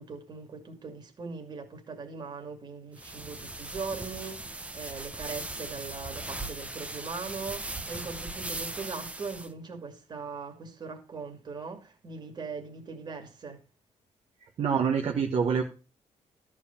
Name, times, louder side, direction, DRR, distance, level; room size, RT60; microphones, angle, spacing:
voice 1, 0.0-13.6, right 4 dB, 35° right, 2.6 m, -40 dB
sound 1, 3.0-9.5, right 2 dB, 10° right, 0.9 m, -39 dB
voice 2, 14.4-15.6, right 6 dB, 60° right, 1.4 m, -26 dB
13.5 x 5.0 x 7.1 m
cardioid pair, 150°, 12 cm